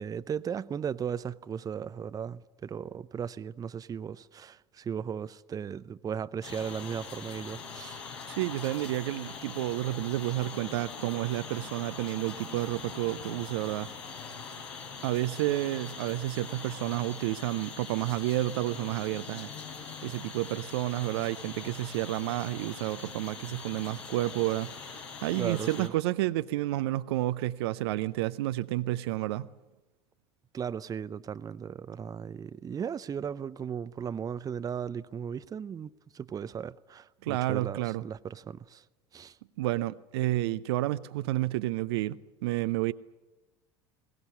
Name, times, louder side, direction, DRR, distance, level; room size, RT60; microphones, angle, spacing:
voice 1, 0.0-8.0 25.3-25.9 30.5-38.8 39.1-39.3, right 7 dB, 25° right, 0.7 m, -36 dB
sound 1, 6.4-25.9, left 5 dB, 70° left, 3.8 m, -43 dB
voice 2, 8.3-13.9 15.0-19.5 20.0-24.7 25.2-29.5 37.2-38.0 39.6-42.9, right 16 dB, 60° right, 0.7 m, -30 dB
21.5 x 18.5 x 9.8 m
figure-of-eight pair, 70°, 15 cm